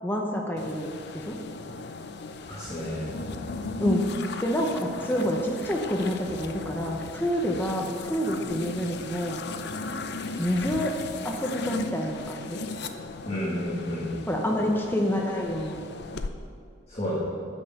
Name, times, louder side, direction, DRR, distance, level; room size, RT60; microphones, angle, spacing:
voice 1, 0.0-1.4 3.8-4.1 4.4-9.4 10.4-11.0 11.2-12.6 14.3-15.8, equal, 10° left, 0 dB, 0.8 m, -28 dB
sound 1, 0.6-16.3, left 3 dB, 55° left, 0.5 m, -37 dB
voice 2, 2.5-3.2 13.2-14.1 16.9-17.2, equal, 30° left, -9 dB, 2.1 m, -31 dB
10.0 x 6.7 x 6.5 m, 2.2 s
head